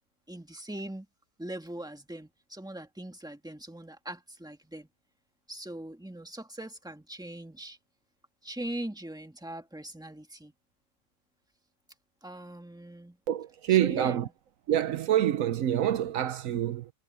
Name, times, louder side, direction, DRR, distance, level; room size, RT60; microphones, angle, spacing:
voice 1, 0.3-1.1 1.4-4.9 5.5-7.8 8.4-10.5 12.2-13.2 13.7-14.2, right 1 dB, 5° right, 1.8 m, -40 dB
voice 2, 13.3-14.3 14.7-16.9, right 11 dB, 75° right, 1.1 m, -26 dB
omnidirectional pair, 1.4 m